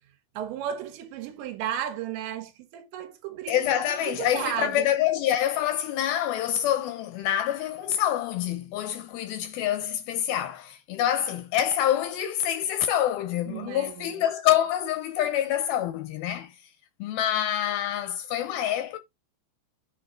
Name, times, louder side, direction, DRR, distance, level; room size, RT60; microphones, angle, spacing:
voice 1, 0.4-3.6 4.0-4.9 13.5-14.2, right 10 dB, 80° right, 3.7 m, -34 dB
voice 2, 3.5-16.6 17.0-19.0, left 11 dB, 80° left, 2.2 m, -26 dB
8.4 x 3.8 x 4.8 m
omnidirectional pair, 5.2 m